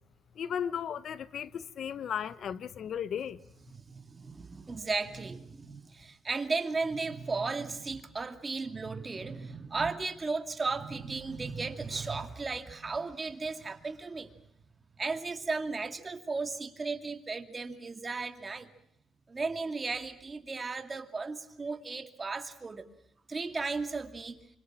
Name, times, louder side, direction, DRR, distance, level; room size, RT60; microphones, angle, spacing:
voice 1, 0.4-3.4, left 8 dB, 60° left, 0.9 m, -35 dB
voice 2, 3.7-14.3 15.0-18.7 19.3-22.9 23.3-24.4, right 4 dB, 25° right, 2.5 m, -35 dB
26.5 x 25.5 x 6.1 m
cardioid pair, 100°, 0 cm